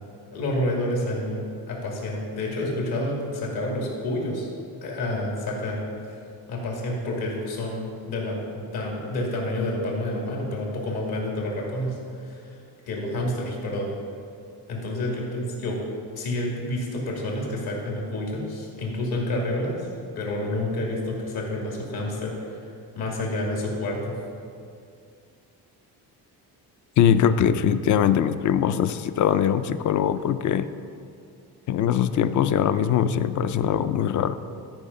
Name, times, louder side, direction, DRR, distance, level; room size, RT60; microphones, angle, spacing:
voice 1, 0.3-4.5 4.8-5.8 6.1-6.2 6.5-8.4 8.7-12.6 12.9-13.9 14.7-15.8 16.2-19.9 20.2-22.6 22.9-24.1, left 1 dB, 65° left, -2 dB, 2.5 m, -29 dB
voice 2, 27.0-30.7 31.7-34.3, left 9 dB, 50° left, 13 dB, 0.5 m, -22 dB
12.5 x 5.5 x 5.4 m, 2.4 s
cardioid pair, 145°, 39 cm